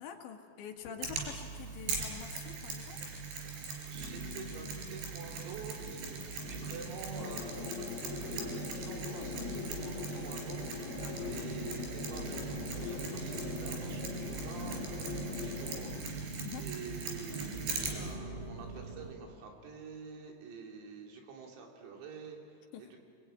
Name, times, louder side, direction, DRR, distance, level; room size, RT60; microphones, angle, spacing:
voice 1, 0.0-3.1 10.9-11.3 16.4-16.7 22.7-22.8, left 8 dB, 65° left, 3 dB, 3.8 m, -46 dB
sound 1, 0.8-1.7 2.0-2.6 3.1-3.2 3.9-19.1, right 1 dB, 30° left, 1.5 m, -44 dB
Mechanisms, 1.0-18.1, right 5 dB, 55° right, 5.4 m, -41 dB
voice 2, 3.5-23.0, right 5 dB, 85° right, 1 dB, 5.6 m, -48 dB
sound 2, 7.2-16.0, left 8 dB, 90° left, 3.8 m, -43 dB
28.0 x 22.0 x 8.9 m, 2.6 s
omnidirectional pair, 5.9 m